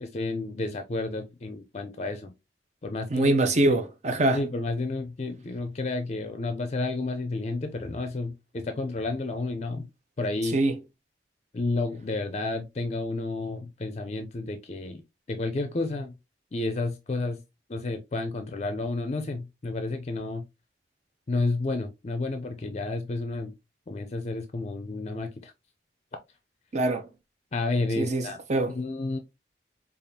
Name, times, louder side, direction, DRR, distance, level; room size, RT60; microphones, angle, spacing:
voice 1, 0.0-2.3 2.8-3.4 3.7-3.8 4.3-9.9 10.2-10.6 11.5-15.0 15.3-16.1 16.5-17.4 17.7-20.5 21.3-23.5 23.9-25.5 27.5-28.4 28.7-29.2, left 3 dB, 35° left, 0.4 m, -31 dB
voice 2, 3.1-4.4 10.5-10.7 26.7-27.1 28.0-28.8, right 2 dB, 40° right, 0.6 m, -24 dB
5.0 x 2.4 x 2.7 m
head